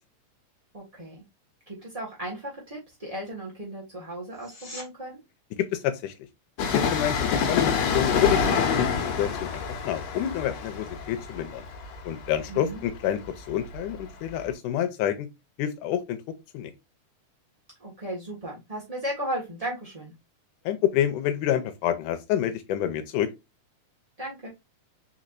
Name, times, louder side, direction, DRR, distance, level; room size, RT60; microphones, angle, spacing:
voice 1, 0.7-1.2 1.7-5.2 12.5-12.8 17.8-20.1 24.2-24.5, right 1 dB, 35° right, 0.5 m, -35 dB
sound 1, 4.3-4.9 16.2-16.3, left 2 dB, 45° left, 0.6 m, -42 dB
voice 2, 5.6-6.1 6.7-11.6 12.0-15.3 15.6-16.2 16.5-16.7 20.7-23.3, left 11 dB, 85° left, 2.2 m, -28 dB
Train, 6.6-14.0 14.3-14.4, left 6 dB, 65° left, 2.2 m, -27 dB
4.7 x 4.2 x 2.5 m
omnidirectional pair, 3.6 m